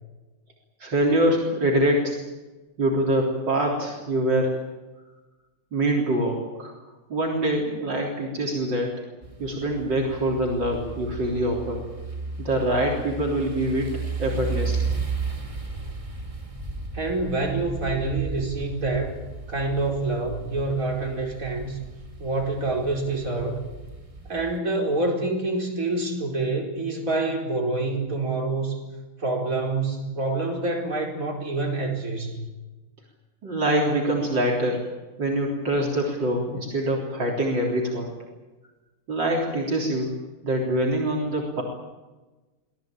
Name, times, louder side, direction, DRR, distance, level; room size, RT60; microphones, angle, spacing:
voice 1, 0.8-2.2 2.8-4.7 5.7-6.7 7.1-9.0 9.4-11.8 12.4-14.9 33.4-34.8 35.2-38.1 39.1-40.1 40.4-41.6, right 1 dB, 60° right, -1 dB, 4.2 m, -24 dB
sound 1, 9.2-24.6, right 4 dB, 15° right, 2.0 m, -34 dB
voice 2, 16.9-19.2 19.5-21.8 22.2-23.6 24.3-28.8 29.2-32.4, right 2 dB, 40° right, 1 dB, 5.3 m, -27 dB
25.5 x 18.5 x 9.0 m, 1.2 s
omnidirectional pair, 2.2 m